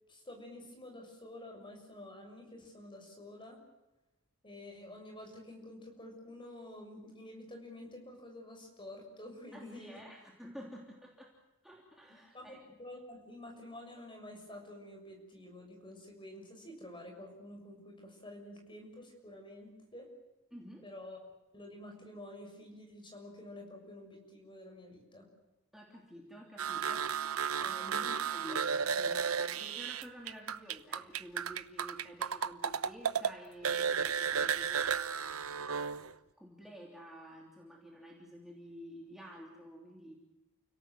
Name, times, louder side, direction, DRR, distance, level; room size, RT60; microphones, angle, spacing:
voice 1, 0.1-3.6 4.4-10.0 12.3-20.1 20.8-21.2 21.5-25.3 28.0-28.1 28.5-28.6, left 1 dB, 25° left, 2 dB, 6.8 m, -49 dB
voice 2, 9.5-11.3 11.6-12.6 20.5-20.9 25.7-36.0 36.4-40.1, equal, ahead, -2 dB, 3.1 m, -50 dB
sound 1, 26.6-33.3 33.6-36.1, right 6 dB, 90° right, 0.9 m, -33 dB
30.0 x 17.5 x 8.0 m, 1.0 s
head